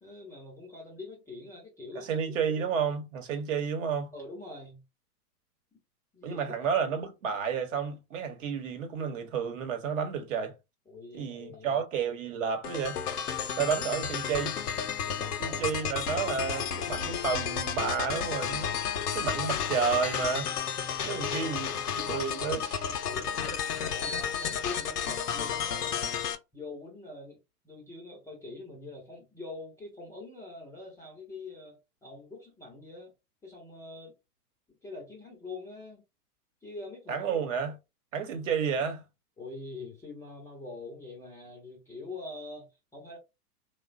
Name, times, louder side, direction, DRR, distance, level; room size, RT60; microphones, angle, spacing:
voice 1, 0.0-2.2 4.1-4.8 6.1-6.4 10.9-11.8 15.0-16.1 20.9-21.8 23.0-26.2 26.5-27.4 27.6-33.1 33.4-34.1 34.8-36.0 36.6-37.4 39.4-43.2, left 2 dB, 5° left, 0.5 m, -44 dB
voice 2, 2.0-4.1 6.2-10.5 11.1-13.0 13.6-14.6 15.4-18.8 19.1-20.5 21.0-23.0 37.1-37.8 38.1-39.0, right 6 dB, 55° right, 1.0 m, -31 dB
sound 1, 12.6-26.3, left 7 dB, 75° left, 0.7 m, -32 dB
3.0 x 2.1 x 2.4 m
figure-of-eight pair, 105°, 47 cm